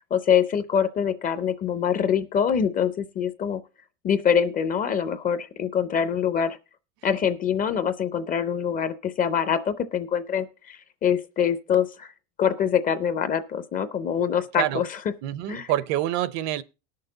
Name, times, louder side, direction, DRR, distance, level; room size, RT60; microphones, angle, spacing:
voice 1, 0.0-3.6 4.0-6.6 7.0-12.1 12.4-15.0 15.5-15.7, left 8 dB, 25° left, 0.5 m, -24 dB
voice 2, 15.2-16.6, right 14 dB, 50° right, 0.6 m, -26 dB
19.5 x 6.7 x 3.8 m
cardioid pair, 165°, 36 cm